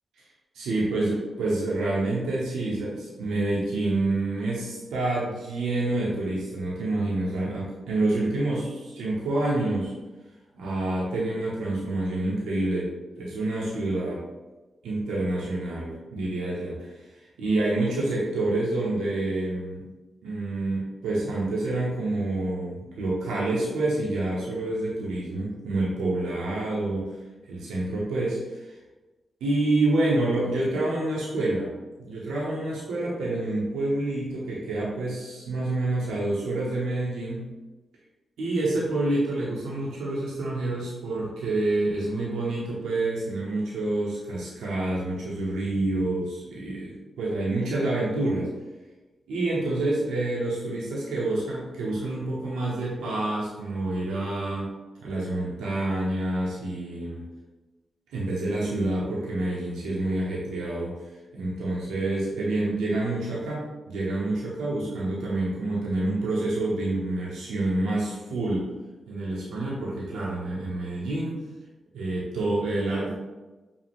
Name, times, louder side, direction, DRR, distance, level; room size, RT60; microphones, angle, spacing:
voice 1, 0.5-9.9 10.5-14.2 14.8-19.9 20.2-27.1 27.4-28.7 29.4-31.7 32.1-37.5 38.4-48.5 49.3-54.7 55.0-57.2 58.1-60.9 61.3-68.7 69.1-71.4 71.9-73.1, right 2 dB, 90° right, -6 dB, 0.9 m, -28 dB
5.2 x 2.4 x 3.5 m, 1.2 s
supercardioid pair, 45°, 0 cm